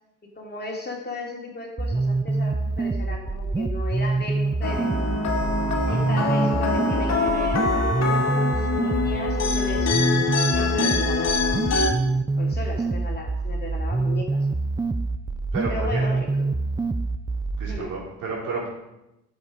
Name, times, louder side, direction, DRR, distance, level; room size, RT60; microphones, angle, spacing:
voice 1, 0.2-5.0 5.9-10.0 10.3-11.7 12.4-14.5 15.7-16.3 17.7-17.9, left 2 dB, 35° left, 0 dB, 2.7 m, -35 dB
sound 1, 1.8-17.8, right 3 dB, 15° right, 0.5 m, -25 dB
sound 2, 4.6-11.9, left 4 dB, 60° left, 2.5 m, -24 dB
voice 2, 5.8-6.2 15.5-16.1 17.6-18.7, right 3 dB, 85° right, -5 dB, 5.0 m, -32 dB
11.0 x 8.0 x 5.1 m, 0.90 s
cardioid pair, 90°, 30 cm